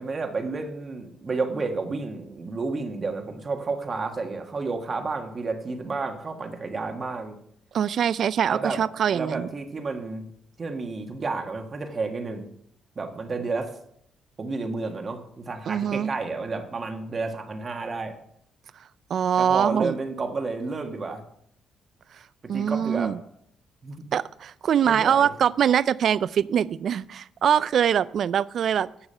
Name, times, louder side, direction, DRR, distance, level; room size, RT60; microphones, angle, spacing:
voice 1, 0.0-7.4 8.5-8.8 9.1-10.3 10.6-12.5 12.9-13.7 14.4-18.1 19.4-21.2 22.4-23.1 23.8-24.1 24.8-25.3, right 3 dB, 40° right, 4 dB, 1.5 m, -31 dB
voice 2, 7.7-9.5 15.7-16.1 19.1-20.0 22.5-23.2 24.1-28.9, right 8 dB, 60° right, 18 dB, 0.4 m, -23 dB
10.0 x 7.0 x 5.6 m, 0.70 s
cardioid pair, 90°, 0 cm